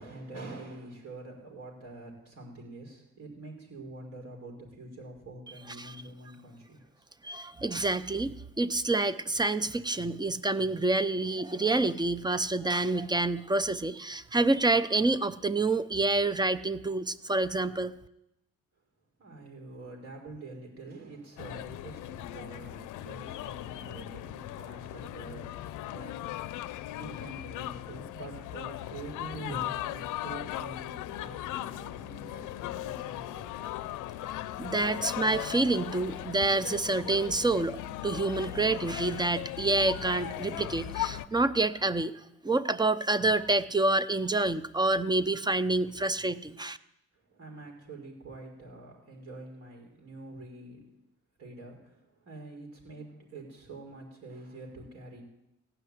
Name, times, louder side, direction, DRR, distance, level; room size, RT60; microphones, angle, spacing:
voice 1, 0.0-6.9 19.2-26.5 26.9-35.0 47.3-50.8 51.4-55.2, right 2 dB, 55° right, 0 dB, 4.9 m, -46 dB
voice 2, 5.7-6.0 7.2-17.9 34.2-34.3 34.6-42.1 42.4-46.8, right 2 dB, 15° right, 14 dB, 0.6 m, -28 dB
sound 1, 21.4-41.3, left 14 dB, 85° left, 0.5 m, -38 dB
16.0 x 5.8 x 9.6 m, 0.87 s
cardioid pair, 90°, 30 cm